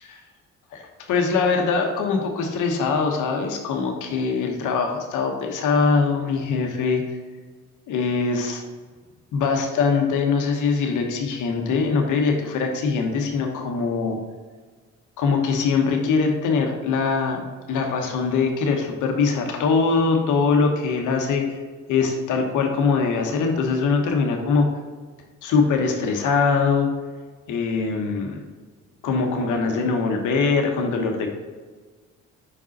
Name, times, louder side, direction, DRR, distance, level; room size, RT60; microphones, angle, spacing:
voice 1, 0.7-7.0 7.9-8.6 9.3-14.2 15.2-17.4 17.7-21.6 21.9-24.6 25.4-26.9 27.5-28.4 29.0-31.3, left 4 dB, 85° left, 3 dB, 1.1 m, -22 dB
5.3 x 5.1 x 4.1 m, 1.5 s
cardioid pair, 90°, 30 cm